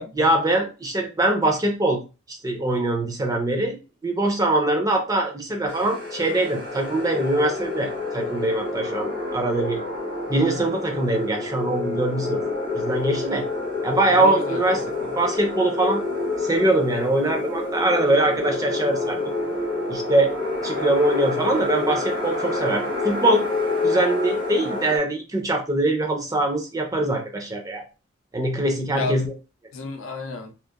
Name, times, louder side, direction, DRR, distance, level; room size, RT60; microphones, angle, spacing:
voice 1, 0.1-2.0 2.3-3.8 4.0-9.8 10.3-12.4 12.7-13.5 13.8-14.8 15.2-16.0 16.4-19.3 19.9-20.4 20.6-23.5 23.8-27.8 28.3-29.3, right 2 dB, 20° right, 0.4 m, -23 dB
sound 1, 5.7-25.0, left 3 dB, 75° right, 0.9 m, -28 dB
voice 2, 14.1-15.1 28.9-29.3 29.7-30.5, left 3 dB, 85° left, 0.5 m, -33 dB
2.8 x 2.0 x 2.3 m
head